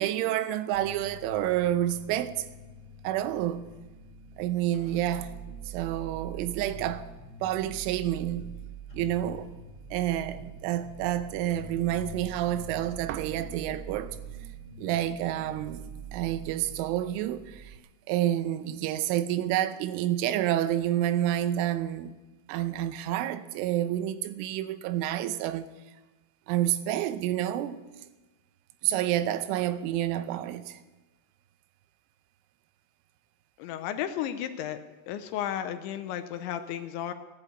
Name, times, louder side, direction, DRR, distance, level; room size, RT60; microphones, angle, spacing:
voice 1, 0.0-2.5 3.0-3.7 4.4-5.3 5.7-7.1 7.4-8.5 8.9-9.5 9.9-14.2 14.8-17.8 18.1-22.2 22.5-25.7 26.5-27.8 28.8-30.8, right 12 dB, 90° right, 3.3 m, -29 dB
sound 1, 0.7-17.8, right 5 dB, 25° left, 2.9 m, -44 dB
voice 2, 33.6-34.8 35.1-37.1, left 10 dB, 80° left, 3.0 m, -33 dB
16.0 x 11.0 x 8.2 m
omnidirectional pair, 5.5 m